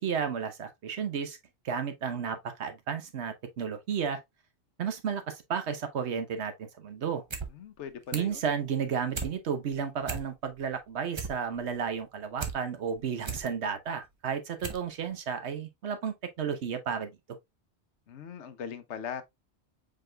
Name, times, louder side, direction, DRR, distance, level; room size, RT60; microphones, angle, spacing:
voice 1, 0.0-1.4 1.6-4.2 4.8-7.2 8.1-17.1, right 7 dB, 70° right, 1.1 m, -33 dB
sound 1, 7.1-7.5 7.8-8.4 8.8-9.3 9.7-9.8 10.0-10.6 10.9-12.6 13.0-13.5 14.0-14.1 14.6-14.9 15.2-15.3, right 5 dB, 30° right, 0.6 m, -37 dB
voice 2, 7.5-8.4 18.1-19.2, left 7 dB, 80° left, 1.0 m, -40 dB
5.1 x 4.6 x 2.2 m
omnidirectional pair, 1.2 m